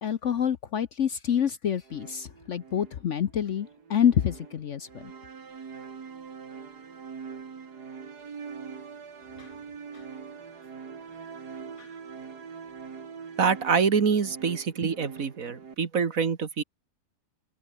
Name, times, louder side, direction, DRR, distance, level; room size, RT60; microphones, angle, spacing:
voice 1, 0.0-4.9 9.4-9.5, left 9 dB, 55° left, 1.0 m, -27 dB
sound 1, 1.8-15.8, right 6 dB, 70° right, 2.6 m, -43 dB
voice 2, 13.4-16.6, right 6 dB, 55° right, 2.0 m, -25 dB
open air
omnidirectional pair, 1.8 m